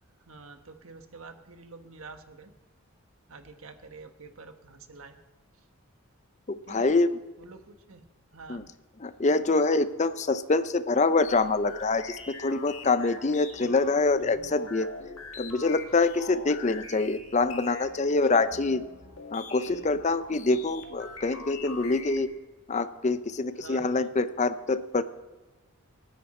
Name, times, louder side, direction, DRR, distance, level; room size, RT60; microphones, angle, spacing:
voice 1, 0.3-2.5 3.3-5.2 6.7-7.0 7.4-8.7 23.6-24.2, right 3 dB, 70° right, 7 dB, 1.3 m, -47 dB
voice 2, 6.5-7.1 8.5-8.6 9.0-14.9 15.4-18.8 19.3-22.3 22.7-25.0, left 3 dB, 30° left, 13 dB, 0.5 m, -25 dB
sound 1, 11.2-22.4, left 4 dB, 65° left, 1.9 m, -44 dB
27.0 x 10.0 x 4.3 m, 1.2 s
head